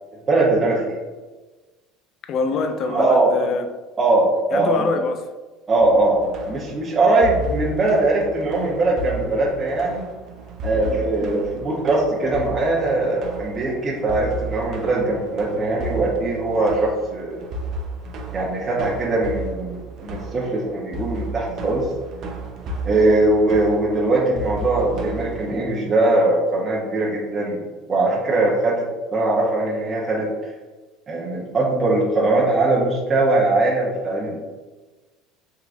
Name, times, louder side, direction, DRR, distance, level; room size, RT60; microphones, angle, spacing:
voice 1, 0.3-1.0 2.8-3.3 4.0-4.9 5.7-10.0 10.6-17.5 18.3-21.9 22.8-27.6 27.9-28.8 29.1-30.5 31.1-34.3, right 2 dB, 25° right, 0.8 m, -21 dB
voice 2, 2.3-3.6 4.5-5.2 10.7-11.1, left 4 dB, 50° left, 0.3 m, -25 dB
sound 1, 5.8-25.6, right 2 dB, 55° right, 0.5 m, -34 dB
3.6 x 2.9 x 2.5 m
supercardioid pair, 90°, 0 cm